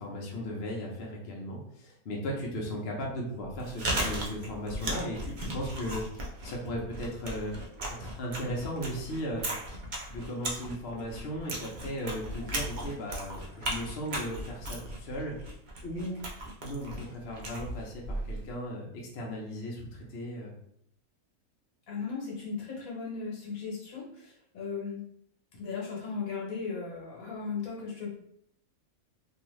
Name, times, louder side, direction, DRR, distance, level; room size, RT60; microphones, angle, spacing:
voice 1, 0.0-6.0 6.4-7.5 8.0-9.4 10.1-15.4 15.8-16.2 16.6-20.5, equal, 55° left, -2 dB, 0.8 m, -36 dB
Chewing mastication, 3.4-18.5, right 1 dB, 60° right, 0.5 m, -37 dB
voice 2, 21.9-25.0 25.5-28.1, left 5 dB, 75° left, -3 dB, 1.3 m, -37 dB
2.7 x 2.3 x 3.0 m, 0.69 s
omnidirectional pair, 1.5 m